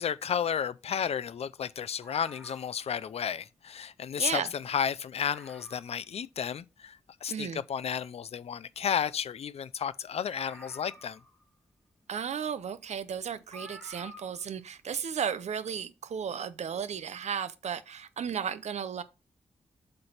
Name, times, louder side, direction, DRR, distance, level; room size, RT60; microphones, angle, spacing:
voice 1, 0.0-11.2, left 8 dB, 60° left, 0.4 m, -32 dB
sound 1, 2.0-2.9 4.0-4.1 4.4-4.5 4.9-5.0 5.2-6.0 6.5-6.6 10.3-11.5 12.7-12.8 13.5-14.5 14.8-14.9, left 1 dB, ahead, 1.4 m, -50 dB
voice 2, 4.2-4.5 7.3-7.6 12.1-19.0, right 7 dB, 70° right, 0.6 m, -34 dB
8.0 x 3.3 x 5.7 m
wide cardioid pair, 140°, 12 cm